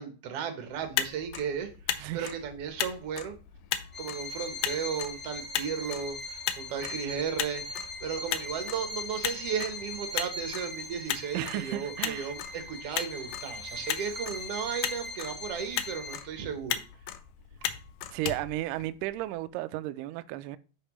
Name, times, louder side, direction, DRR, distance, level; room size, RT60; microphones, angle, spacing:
voice 1, 0.0-3.3 4.0-16.8, right 7 dB, 60° right, 1.7 m, -35 dB
Motor vehicle (road), 0.7-19.3, left 11 dB, 75° left, 2.0 m, -37 dB
voice 2, 2.0-2.3 11.3-12.3 18.1-20.6, right 15 dB, 80° right, 2.0 m, -34 dB
Bowed string instrument, 3.9-16.4, left 3 dB, 25° left, 2.9 m, -40 dB
9.9 x 5.3 x 3.1 m
omnidirectional pair, 4.0 m